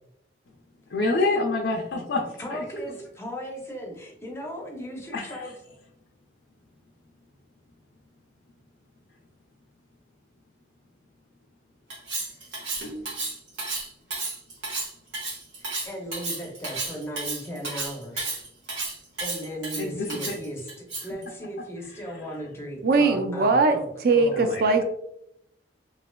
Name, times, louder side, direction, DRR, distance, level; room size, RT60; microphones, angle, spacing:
voice 1, 0.9-2.2 2.5-2.6 5.1-5.5 19.8-20.4 24.3-24.6, left 3 dB, 75° left, -1 dB, 0.4 m, -27 dB
voice 2, 2.4-5.5 15.6-18.3 19.2-23.9 24.1-24.5, equal, 15° left, -1 dB, 0.5 m, -37 dB
Cutlery silverware, 11.9-21.2, right 3 dB, 85° right, 0.9 m, -32 dB
voice 3, 22.8-24.8, right 3 dB, 50° right, 6 dB, 0.3 m, -21 dB
3.1 x 2.8 x 2.2 m, 0.78 s
head